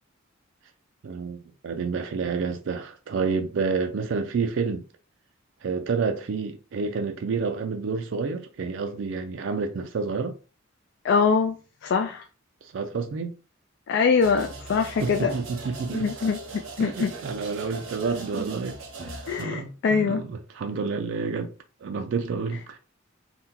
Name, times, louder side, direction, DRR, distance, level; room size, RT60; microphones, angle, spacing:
voice 1, 1.0-1.4 1.6-4.8 5.6-10.4 12.6-13.4 15.0-16.0 16.8-18.8 19.0-21.5 21.8-22.8, right 4 dB, 65° right, 0.4 m, -29 dB
voice 2, 11.0-12.3 13.9-15.3 15.9-17.1 19.3-20.2, left 5 dB, 60° left, 0.3 m, -24 dB
sound 1, 14.2-19.4, right 3 dB, 90° right, 0.9 m, -38 dB
2.8 x 2.1 x 3.6 m
head